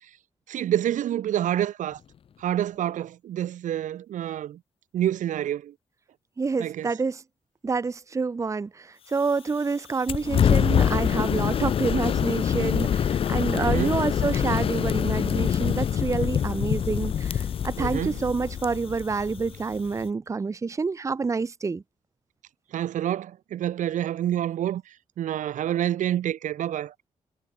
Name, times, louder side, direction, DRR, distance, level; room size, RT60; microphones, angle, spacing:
voice 1, 0.5-2.0 2.4-4.6 4.9-5.7 6.6-6.9 13.5-14.0 17.8-18.2 22.7-24.8 25.2-26.9, right 11 dB, 90° right, 5.1 m, -28 dB
voice 2, 6.4-7.2 7.6-21.8, right 4 dB, 25° right, 1.2 m, -28 dB
sound 1, 10.1-20.1, left 8 dB, 45° left, 0.7 m, -25 dB
wide cardioid pair, 150°, 13 cm